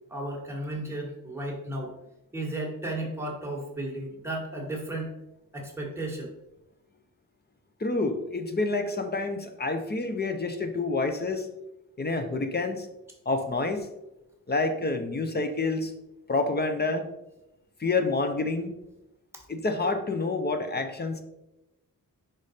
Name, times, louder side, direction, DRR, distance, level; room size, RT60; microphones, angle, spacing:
voice 1, 0.1-1.9 2.3-5.1 5.5-6.3, right 1 dB, 5° right, -2 dB, 1.4 m, -34 dB
voice 2, 7.8-11.5 12.0-12.9 13.3-13.9 14.5-15.9 16.3-17.1 17.8-18.7 19.5-21.2, left 3 dB, 30° left, 7 dB, 0.6 m, -28 dB
5.1 x 5.0 x 4.2 m, 0.91 s
wide cardioid pair, 160°, 35 cm